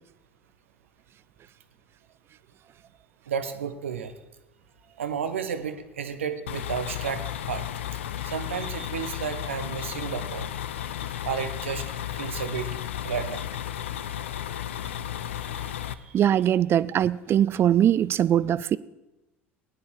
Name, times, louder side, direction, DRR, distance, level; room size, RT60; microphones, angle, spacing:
voice 1, 3.3-4.1 5.0-7.7 8.2-10.5 11.2-11.8 12.2-12.7 13.0-13.5 15.5-16.2, right 7 dB, 75° right, 1.1 m, -32 dB
sound 1, 6.5-15.9, left 11 dB, 70° left, 0.6 m, -34 dB
voice 2, 16.1-18.8, right 10 dB, 35° right, 0.5 m, -21 dB
19.0 x 9.8 x 4.8 m
figure-of-eight pair, 65°, 7 cm